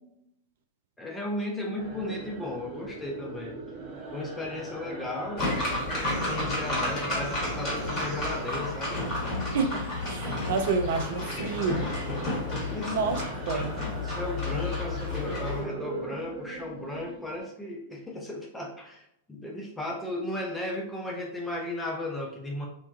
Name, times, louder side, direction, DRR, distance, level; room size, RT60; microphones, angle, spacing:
voice 1, 1.0-3.6 4.1-5.5 6.3-9.1 12.7-13.0 13.5-22.7, left 1 dB, 10° left, -1 dB, 0.5 m, -35 dB
sound 1, 1.8-9.1 9.4-17.4, right 3 dB, 30° right, 0.9 m, -41 dB
sound 2, 5.4-15.6, left 2 dB, 30° left, 1.3 m, -31 dB
voice 2, 9.5-11.9 12.8-13.7, right 4 dB, 55° right, 4 dB, 0.4 m, -29 dB
3.0 x 2.1 x 2.5 m, 0.76 s
figure-of-eight pair, 95°, 0 cm